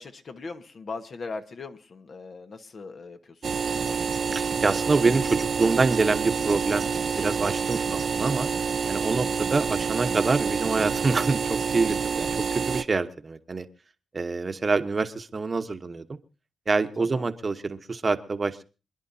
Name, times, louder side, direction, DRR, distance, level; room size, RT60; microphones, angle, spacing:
voice 1, 0.0-4.0 9.0-9.4 17.0-17.2, left 4 dB, 55° left, 7 dB, 1.4 m, -40 dB
sound 1, 3.4-12.8, right 6 dB, 55° right, 0.6 m, -28 dB
voice 2, 4.3-8.5 8.9-13.7 14.1-16.1 16.7-18.6, right 3 dB, 35° right, 9 dB, 1.1 m, -26 dB
27.0 x 10.5 x 2.8 m, 0.33 s
cardioid pair, 80°, 0 cm